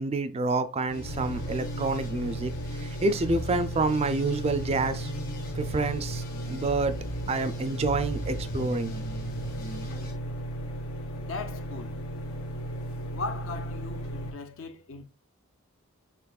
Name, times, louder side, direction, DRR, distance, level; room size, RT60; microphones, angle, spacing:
voice 1, 0.0-2.5 3.0-5.1 5.6-6.2 6.5-6.9 7.3-8.9, right 3 dB, 30° right, 0.3 m, -28 dB
sound 1, 0.9-10.1, right 1 dB, 45° left, 1.3 m, -40 dB
sound 2, 1.0-14.3, right 1 dB, 85° left, 1.2 m, -35 dB
voice 2, 11.2-12.0 13.1-15.1, left 4 dB, 65° left, 0.6 m, -38 dB
5.7 x 3.4 x 2.3 m
head